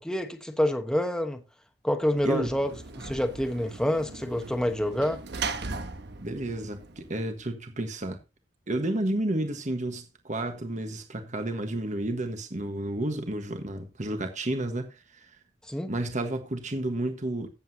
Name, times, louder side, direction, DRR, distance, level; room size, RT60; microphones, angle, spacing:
voice 1, 0.0-1.4 1.8-5.2 15.7-15.9, equal, 5° left, 1.1 m, -27 dB
Sliding door / Slam, 2.1-7.5, right 4 dB, 65° right, 1.2 m, -39 dB
voice 2, 2.2-2.6 6.2-8.2 8.7-15.4 15.9-17.5, right 1 dB, 40° right, 1.4 m, -31 dB
15.5 x 7.9 x 2.8 m
head